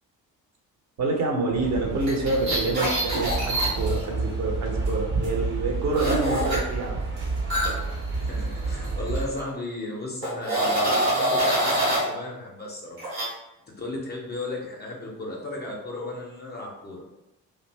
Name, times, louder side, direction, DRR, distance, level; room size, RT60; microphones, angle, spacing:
voice 1, 1.0-7.0, right 3 dB, 35° right, 1 dB, 0.6 m, -27 dB
sound 1, 1.6-9.3, right 3 dB, 60° right, 0.9 m, -30 dB
sound 2, 2.0-4.0 6.0-6.6 7.5-8.9 9.1-9.4 10.2-12.1 13.0-13.3, right 1 dB, 80° right, 1.1 m, -25 dB
voice 2, 8.2-13.4 13.7-17.0, left 2 dB, 20° left, -2 dB, 0.5 m, -35 dB
2.5 x 2.2 x 3.1 m, 0.95 s
figure-of-eight pair, 45°, 49 cm